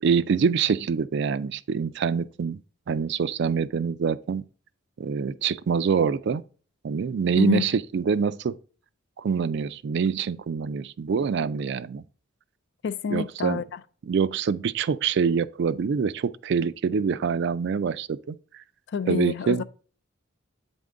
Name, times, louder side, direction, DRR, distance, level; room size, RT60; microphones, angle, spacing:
voice 1, 0.0-2.6 2.9-4.4 5.0-6.4 6.8-8.6 9.2-12.0 13.1-13.6 14.1-18.6 19.0-19.6, right 6 dB, 55° right, 0.3 m, -25 dB
voice 2, 12.8-13.8 18.9-19.6, left 6 dB, 55° left, 0.4 m, -28 dB
8.3 x 3.6 x 3.8 m
head